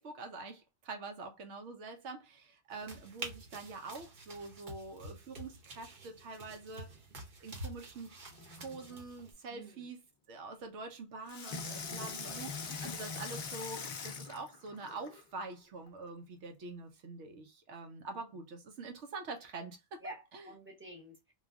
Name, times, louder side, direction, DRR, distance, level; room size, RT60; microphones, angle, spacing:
voice 1, 0.0-7.0 7.4-8.1 8.6-10.0 10.3-20.0 20.3-20.5, right 3 dB, 80° right, 1.0 m, -45 dB
sound 1, 2.7-9.3, right 2 dB, 50° right, 0.9 m, -48 dB
Water tap faucet / Sink (filling or washing), 8.3-9.0 11.3-15.2 15.9-16.0, left 5 dB, 55° left, 0.6 m, -42 dB
voice 2, 9.5-9.9 12.2-12.4 12.7-13.0 18.1-18.2 20.0-21.3, equal, 10° right, 0.9 m, -49 dB
3.2 x 2.3 x 2.3 m
omnidirectional pair, 1.2 m